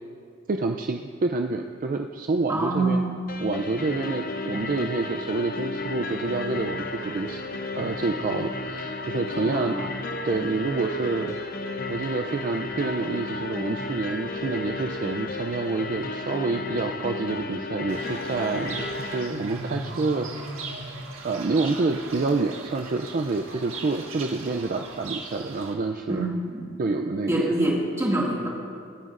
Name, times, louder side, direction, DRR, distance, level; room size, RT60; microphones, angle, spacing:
voice 1, 0.5-3.0 3.4-7.4 7.7-9.8 10.2-11.4 11.9-20.8 21.2-26.3 26.8-27.5, right 3 dB, 40° right, 4 dB, 0.4 m, -28 dB
voice 2, 2.5-3.1 9.4-9.9 26.1-26.8 27.3-28.5, right 1 dB, 15° right, -4 dB, 2.0 m, -25 dB
sound 1, 3.3-19.3, left 2 dB, 45° left, 0.7 m, -33 dB
Fowl / Bird, 17.9-25.7, right 3 dB, 85° right, 1.5 m, -38 dB
25.5 x 9.3 x 2.5 m, 2.2 s
head